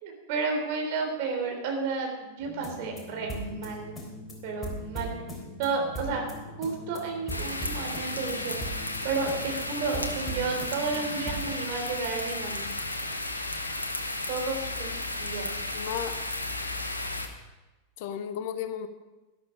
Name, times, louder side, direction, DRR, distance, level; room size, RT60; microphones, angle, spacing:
voice 1, 0.0-3.9 4.4-5.2 5.6-6.2 6.6-12.6 14.3-15.5, right 4 dB, 45° right, 2 dB, 3.6 m, -32 dB
sound 1, 2.4-11.6, right 1 dB, 15° left, 3.4 m, -39 dB
sound 2, 7.3-17.3, left 2 dB, 80° left, 1.2 m, -34 dB
voice 2, 15.7-16.2 18.0-18.9, left 8 dB, 50° left, 10 dB, 0.9 m, -33 dB
12.5 x 12.0 x 5.3 m, 1.1 s
figure-of-eight pair, 90°, 0 cm